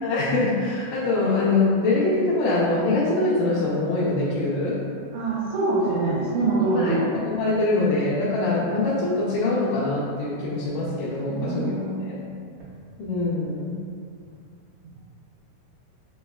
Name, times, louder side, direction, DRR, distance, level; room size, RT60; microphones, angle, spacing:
voice 1, 0.0-4.8 6.7-11.7 12.0-12.2 13.0-13.7, left 2 dB, 90° left, -9 dB, 2.1 m, -23 dB
voice 2, 5.1-7.0 11.3-12.0, right 3 dB, 75° right, -10 dB, 2.0 m, -24 dB
5.4 x 2.3 x 2.2 m, 2.3 s
omnidirectional pair, 3.5 m